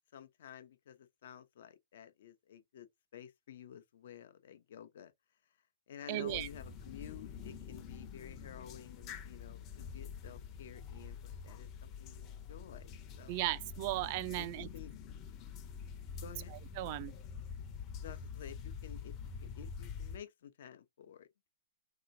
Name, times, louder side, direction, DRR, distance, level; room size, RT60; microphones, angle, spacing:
voice 1, 0.1-5.1 5.9-13.4 14.4-14.5 14.7-14.9 16.2-16.5 18.0-19.1 19.4-21.5, left 9 dB, 65° left, 0.7 m, -52 dB
voice 2, 6.1-6.5 13.3-14.7 16.8-17.1, right 17 dB, 45° right, 0.3 m, -36 dB
sound 1, 6.3-20.2, left 6 dB, 30° left, 0.7 m, -46 dB
3.2 x 2.9 x 2.6 m
hypercardioid pair, 135°, 0 cm